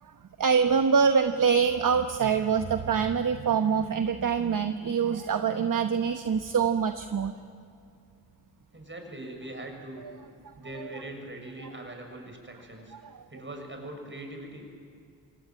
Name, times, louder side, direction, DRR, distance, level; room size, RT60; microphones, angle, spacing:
voice 1, 0.4-7.3 10.0-10.1 10.7-10.9 11.6-11.7 13.0-13.2, right 6 dB, 50° right, 8 dB, 1.1 m, -25 dB
voice 2, 8.7-10.0 10.6-12.9 13.3-14.6, right 1 dB, 30° right, 3 dB, 7.0 m, -41 dB
25.5 x 19.0 x 9.1 m, 2.4 s
cardioid pair, 50°, 40 cm